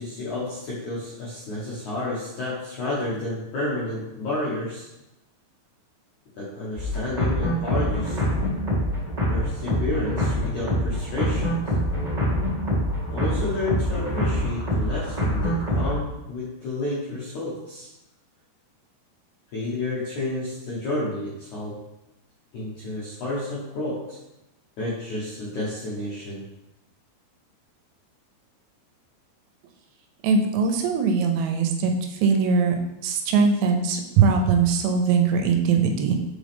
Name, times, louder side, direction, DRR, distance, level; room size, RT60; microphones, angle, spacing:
voice 1, 0.0-4.9 6.4-8.2 9.3-11.6 13.1-17.9 19.5-21.8 22.5-24.2 24.8-26.5, left 2 dB, 70° left, -7 dB, 1.8 m, -30 dB
sound 1, 6.8-15.9, equal, 30° right, 0.6 m, -25 dB
voice 2, 30.2-31.9 32.2-36.2, right 5 dB, 80° right, 4 dB, 2.8 m, -21 dB
7.0 x 5.0 x 3.5 m, 0.93 s
omnidirectional pair, 5.1 m